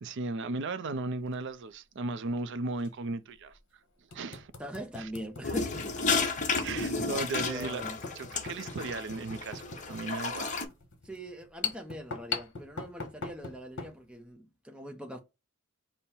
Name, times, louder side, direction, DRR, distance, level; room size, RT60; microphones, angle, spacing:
voice 1, 0.0-3.6 4.1-4.5 5.0-5.1 6.2-7.8 8.1-10.5, right 3 dB, 60° right, 0.5 m, -36 dB
sound 1, 1.1-1.3 2.8-2.9 3.5-3.6 4.1-14.0, left 5 dB, 60° left, 1.2 m, -41 dB
voice 2, 4.6-5.8 6.7-8.0 11.0-15.2, equal, 5° right, 0.6 m, -42 dB
sound 2, 5.4-10.6, left 4 dB, 35° left, 1.0 m, -32 dB
5.3 x 2.1 x 4.3 m
head